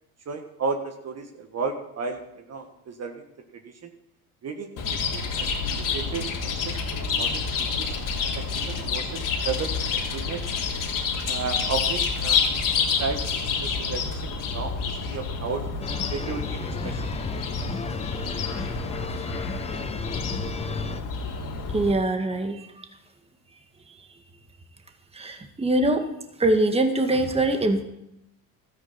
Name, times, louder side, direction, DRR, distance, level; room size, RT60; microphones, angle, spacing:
voice 1, 0.3-3.2 3.8-3.9 4.4-4.8 5.1-5.5 5.9-6.7 7.0-7.9 8.5-10.4 11.3-12.4 12.8-15.6 16.1-17.0, right 4 dB, 35° right, 5 dB, 1.6 m, -33 dB
Chirp tweet, 4.8-21.9, left 5 dB, 45° left, 3.2 m, -28 dB
sound 1, 15.8-21.0, left 4 dB, 15° left, 0.8 m, -34 dB
voice 2, 21.7-22.6 25.2-26.1 26.4-27.8, right 1 dB, 15° right, 6 dB, 1.8 m, -23 dB
16.0 x 13.0 x 4.4 m, 0.82 s
hypercardioid pair, 80°, 45 cm